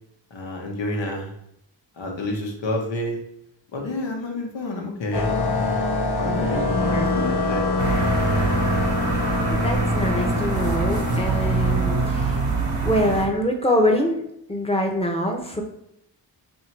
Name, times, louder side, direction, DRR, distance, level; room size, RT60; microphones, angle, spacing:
voice 1, 0.3-1.3 2.0-3.2 3.7-5.8 6.2-7.7, left 1 dB, 80° left, 1 dB, 1.0 m, -29 dB
sound 1, 5.1-12.1, left 3 dB, 60° left, 0.8 m, -25 dB
sound 2, 7.8-13.3, right 3 dB, 70° right, 1.0 m, -24 dB
voice 2, 9.5-12.4 12.8-15.6, equal, 15° left, 2 dB, 0.8 m, -24 dB
2.9 x 2.7 x 4.4 m, 0.79 s
cardioid pair, 70°, 44 cm